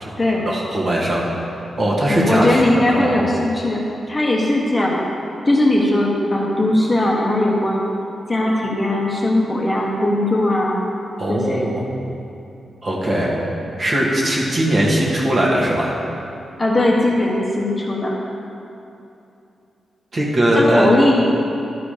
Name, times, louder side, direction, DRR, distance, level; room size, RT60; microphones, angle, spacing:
voice 1, 0.4-1.2 1.6-3.1 11.2-11.8 12.8-13.4 13.8-15.9 20.1-20.9, right 1 dB, 35° right, -4 dB, 1.6 m, -19 dB
voice 2, 2.1-5.1 5.4-7.8 8.3-10.8 11.3-11.7 16.6-18.2 20.5-21.3, left 1 dB, 20° left, -3 dB, 1.0 m, -19 dB
12.0 x 4.9 x 5.0 m, 2.8 s
wide cardioid pair, 140°, 0 cm